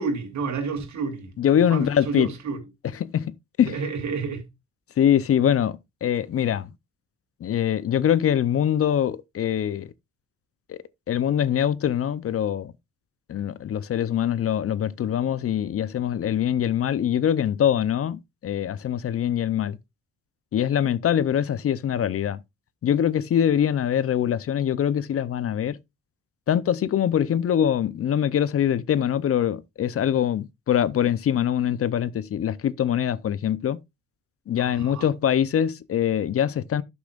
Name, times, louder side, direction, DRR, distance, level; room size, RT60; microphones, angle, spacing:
voice 1, 0.0-1.3 1.7-2.6 3.7-4.5 34.6-35.1, right 4 dB, 65° right, 2.9 m, -30 dB
voice 2, 1.4-2.3 3.0-3.8 5.0-6.7 7.4-9.9 10.7-10.8 11.1-12.7 13.3-19.8 20.5-22.4 22.8-25.8 26.5-33.8 34.5-36.8, left 9 dB, 50° left, 0.6 m, -23 dB
11.5 x 7.0 x 2.4 m
cardioid pair, 90°, 30 cm